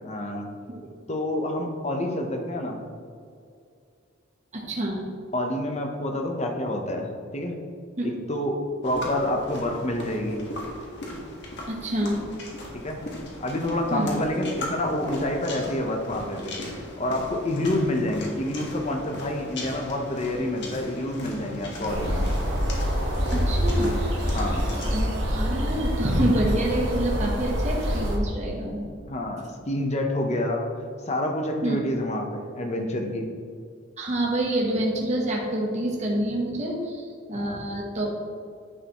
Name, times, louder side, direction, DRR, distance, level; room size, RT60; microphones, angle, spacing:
voice 1, 0.0-0.5 1.1-2.8 5.3-7.6 8.0-10.4 12.7-13.0 13.4-16.5 17.0-22.3 24.3-24.7 29.1-30.7 31.1-33.3 37.3-37.6, left 1 dB, 35° left, 3 dB, 1.0 m, -28 dB
voice 2, 4.5-5.0 8.0-8.1 11.7-12.2 13.9-14.1 23.3-23.9 24.9-28.9 31.6-31.8 34.0-38.2, right 1 dB, 35° right, -2 dB, 1.1 m, -27 dB
sound 1, 8.8-25.0, left 1 dB, 60° left, 1.6 m, -38 dB
sound 2, 21.9-28.2, equal, 80° right, 1.6 m, -26 dB
10.0 x 6.7 x 3.1 m, 2.3 s
head